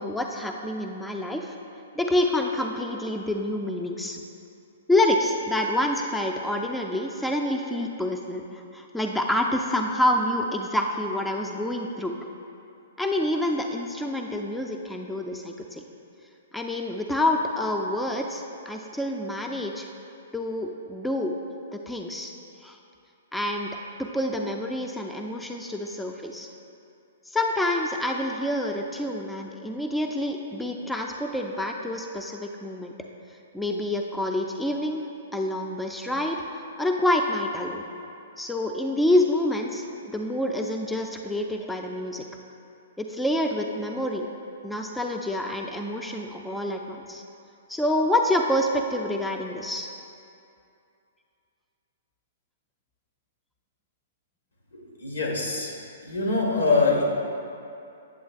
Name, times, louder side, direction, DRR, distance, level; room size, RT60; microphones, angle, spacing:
voice 1, 0.0-1.6 2.0-4.2 4.9-12.1 13.0-15.8 16.5-19.9 20.3-21.3 21.7-22.3 22.6-22.8 23.3-23.7 24.0-26.5 27.3-32.9 33.5-35.1 35.3-37.8 38.4-42.3 43.0-44.3 44.6-47.2 47.7-49.9, left 1 dB, 5° left, 2 dB, 0.4 m, -27 dB
voice 2, 54.7-55.7 56.0-57.0, left 3 dB, 80° left, -2 dB, 1.3 m, -24 dB
8.4 x 7.1 x 2.4 m, 2.6 s
hypercardioid pair, 120°, 0 cm